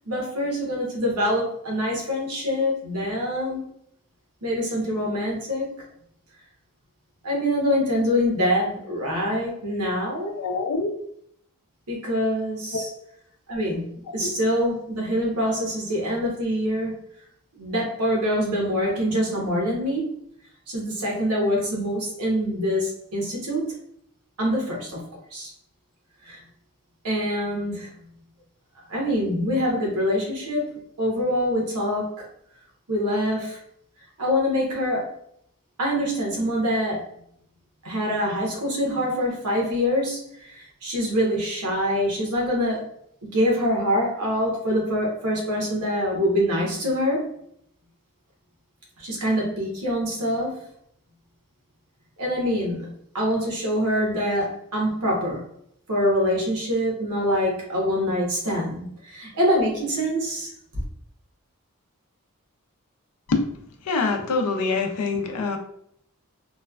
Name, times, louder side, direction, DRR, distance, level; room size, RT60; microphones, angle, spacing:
voice 1, 0.0-3.6 4.4-5.7 7.2-10.3 11.9-12.9 13.5-16.9 17.6-20.1 20.7-23.8 24.4-25.0 25.3-25.5 26.2-26.4 27.0-27.9 28.9-32.1 32.9-33.6 34.2-35.1 35.8-37.0 37.8-42.8 43.3-47.3 49.0-50.5 52.2-55.4 55.9-60.5, equal, 85° right, -2 dB, 1.0 m, -25 dB
voice 2, 10.3-10.9 12.7-12.8 63.3-63.4 63.8-65.6, left 3 dB, 90° left, 5 dB, 0.5 m, -24 dB
3.0 x 2.2 x 2.3 m, 0.70 s
head